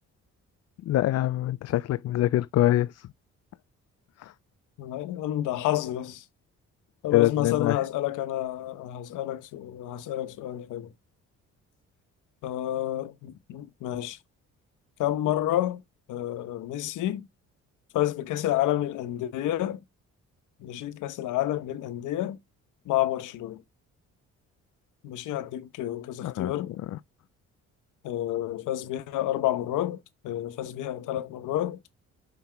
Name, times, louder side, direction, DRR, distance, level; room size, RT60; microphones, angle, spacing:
voice 1, 0.9-3.1 4.2-4.3 7.1-7.8 26.2-26.5 26.9-27.0, left 14 dB, 55° left, 0.5 m, -24 dB
voice 2, 4.8-6.2 7.0-10.9 12.4-14.2 15.0-15.8 16.1-17.3 17.9-19.8 20.6-22.4 22.8-23.6 25.0-26.7 28.0-31.8, left 13 dB, 90° left, 1.0 m, -29 dB
5.8 x 5.7 x 3.4 m
cardioid pair, 90°, 30 cm